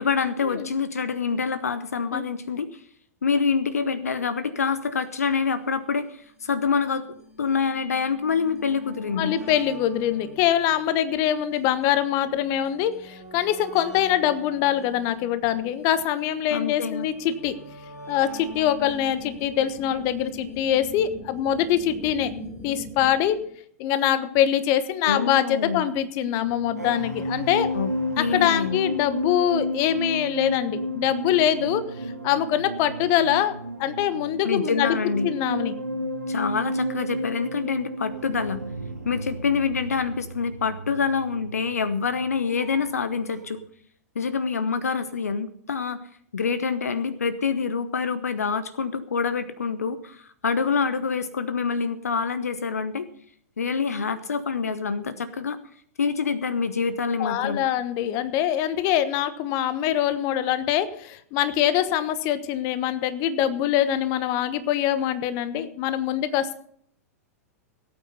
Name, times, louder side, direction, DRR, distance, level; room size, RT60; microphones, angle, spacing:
voice 1, 0.0-2.8 3.2-7.0 7.4-9.4 16.5-17.1 25.0-25.9 27.7-28.8 34.4-35.3 36.3-38.6 39.0-43.6 44.1-46.0 46.3-53.1 53.6-55.6 56.0-57.6, left 5 dB, 70° left, 14 dB, 0.9 m, -26 dB
sound 1, 5.0-5.1 5.3-5.4 6.2-21.5 22.5-22.6 22.7-22.8, equal, 85° left, 6.5 m, -45 dB
voice 2, 9.2-17.6 18.1-22.3 22.6-23.4 23.8-27.7 28.2-31.8 32.2-35.0 35.2-35.7 57.2-66.5, left 11 dB, 40° left, 13 dB, 1.1 m, -24 dB
sound 2, 18.4-23.5, left 2 dB, 20° left, 2.5 m, -41 dB
sound 3, 26.4-43.1 43.3-43.6, equal, 85° right, 1.6 m, -32 dB
17.5 x 8.9 x 5.4 m, 0.63 s
figure-of-eight pair, 100°, 9 cm